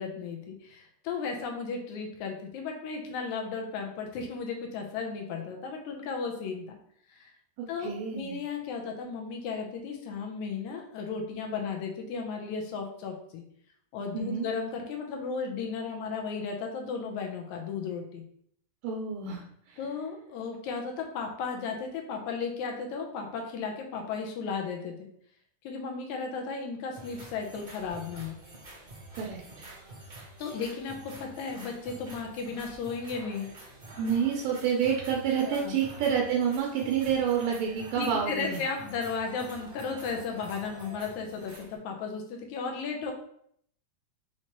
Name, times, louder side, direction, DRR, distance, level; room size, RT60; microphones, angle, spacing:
voice 1, 0.0-6.8 7.1-7.3 7.7-13.4 13.9-18.2 19.8-24.9 25.6-28.4 30.4-33.5 35.4-35.8 37.9-43.1, left 5 dB, 75° left, 2 dB, 1.9 m, -35 dB
voice 2, 7.6-8.4 14.1-14.5 18.8-19.8 29.1-29.4 34.0-38.6, right 7 dB, 90° right, -1 dB, 2.3 m, -28 dB
sound 1, 26.9-41.8, right 2 dB, 50° right, 0.5 m, -47 dB
5.8 x 2.9 x 3.0 m, 0.66 s
omnidirectional pair, 3.8 m